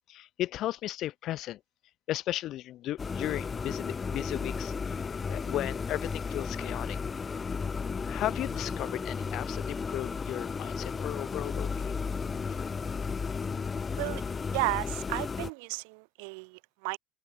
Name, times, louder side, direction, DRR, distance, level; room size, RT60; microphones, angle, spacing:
voice 1, 0.1-1.6 2.1-7.0 8.0-12.0 12.5-12.6, left 14 dB, 50° left, 1.0 m, -35 dB
sound 1, 3.0-15.5, left 5 dB, 20° left, 2.1 m, -34 dB
voice 2, 14.5-17.0, right 35 dB, 80° right, 0.9 m, -33 dB
supercardioid pair, 130°, 0 cm